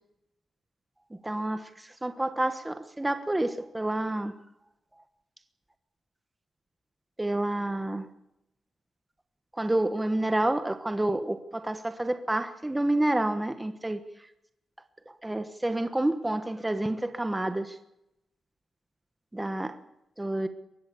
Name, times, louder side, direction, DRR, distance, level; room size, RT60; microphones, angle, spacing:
voice 1, 1.2-4.3 7.2-8.1 9.5-14.0 15.2-17.8 19.3-19.8 20.2-20.5, right 1 dB, 10° right, 9 dB, 1.2 m, -29 dB
23.5 x 19.5 x 7.0 m, 0.83 s
wide cardioid pair, 180°, 0 cm